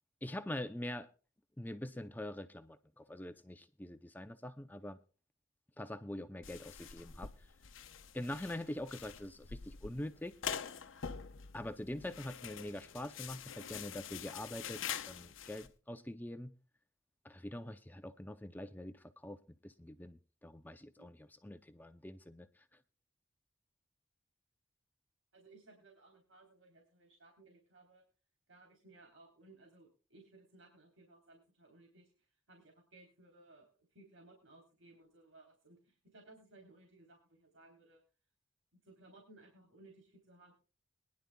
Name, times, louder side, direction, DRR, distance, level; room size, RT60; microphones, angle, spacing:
voice 1, 0.2-1.1 1.6-5.0 5.8-7.5 8.1-10.3 11.5-16.5 17.2-19.4 19.6-22.5, left 1 dB, 10° left, 0.5 m, -44 dB
sound 1, 6.4-15.7, left 7 dB, 85° left, 0.8 m, -45 dB
voice 2, 25.3-28.0 28.5-38.0 38.8-40.5, right 2 dB, 85° right, 3.5 m, -61 dB
22.5 x 10.5 x 2.3 m
head